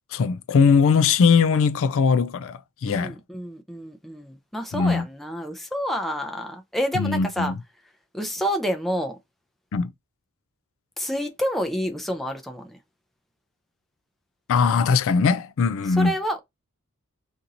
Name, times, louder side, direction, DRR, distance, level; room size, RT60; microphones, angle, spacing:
voice 1, 0.1-3.2 4.7-5.1 6.9-7.6 9.7-9.9 14.5-16.1, left 5 dB, 65° left, 0.4 m, -20 dB
voice 2, 2.9-7.5 8.1-9.2 11.0-12.8 16.0-16.4, equal, ahead, 0.5 m, -28 dB
2.9 x 2.6 x 3.7 m
head